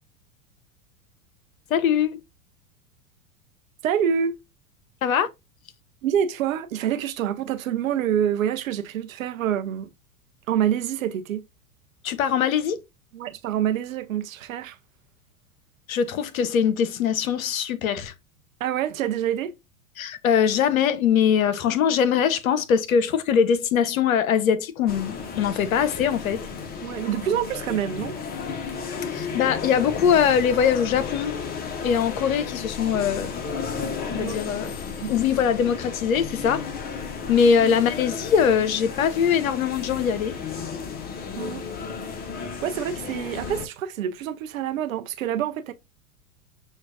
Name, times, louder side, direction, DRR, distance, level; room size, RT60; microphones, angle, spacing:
voice 1, 1.7-2.2 5.0-5.3 12.0-12.8 15.9-18.1 20.0-26.4 29.1-31.4 31.8-33.3 34.1-34.7 35.1-36.7 37.3-40.4, left 7 dB, 70° left, 0.7 m, -22 dB
voice 2, 3.8-4.4 6.0-9.9 10.5-11.4 13.1-14.8 18.6-19.6 26.8-28.2 34.1-34.5 35.0-35.1 37.2-37.5 41.4-41.7 42.6-45.7, right 9 dB, 65° right, 0.6 m, -26 dB
sound 1, 24.9-43.7, left 5 dB, 20° left, 0.7 m, -33 dB
6.3 x 2.3 x 2.3 m
figure-of-eight pair, 90°, 43 cm